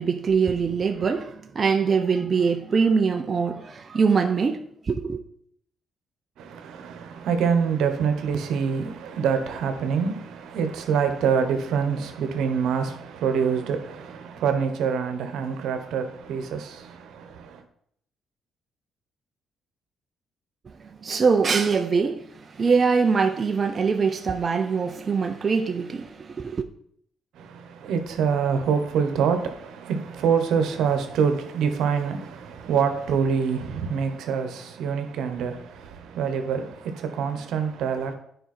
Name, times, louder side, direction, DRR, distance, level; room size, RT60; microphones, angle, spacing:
voice 1, 0.0-5.2 20.8-26.6, right 5 dB, 40° right, 0.6 m, -23 dB
voice 2, 6.4-17.6 27.3-38.1, right 6 dB, 80° right, 1.1 m, -26 dB
9.2 x 5.1 x 4.4 m
cardioid pair, 90°, 0 cm